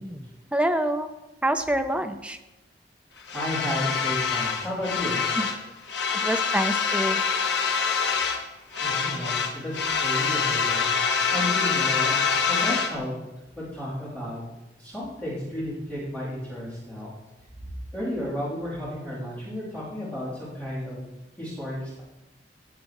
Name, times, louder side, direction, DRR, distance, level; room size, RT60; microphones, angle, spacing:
voice 1, 0.0-1.1 1.4-2.4 5.4-5.5 6.1-7.2, right 1 dB, 5° right, 7 dB, 0.4 m, -27 dB
sound 1, 3.3-5.6 5.9-8.5 8.7-13.0, left 5 dB, 75° left, 1.0 m, -25 dB
voice 2, 3.3-5.2 8.8-13.1 13.5-14.4 14.8-17.1 17.9-21.1 21.4-22.0, equal, 10° left, -10 dB, 2.9 m, -33 dB
16.0 x 7.5 x 3.0 m, 1.0 s
head